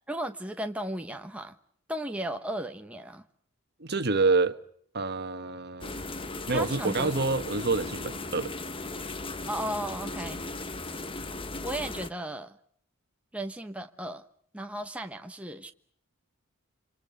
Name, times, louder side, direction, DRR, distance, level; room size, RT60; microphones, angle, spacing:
voice 1, 0.1-1.5 1.9-3.2 6.5-7.1 9.5-10.4 11.6-12.6 13.3-14.2 14.5-15.7, right 1 dB, 5° right, 1.1 m, -35 dB
voice 2, 3.8-4.6 4.9-6.0 6.5-8.5, right 3 dB, 50° right, 1.4 m, -27 dB
sound 1, 5.8-12.1, left 2 dB, 25° left, 1.1 m, -37 dB
28.0 x 26.0 x 6.7 m
head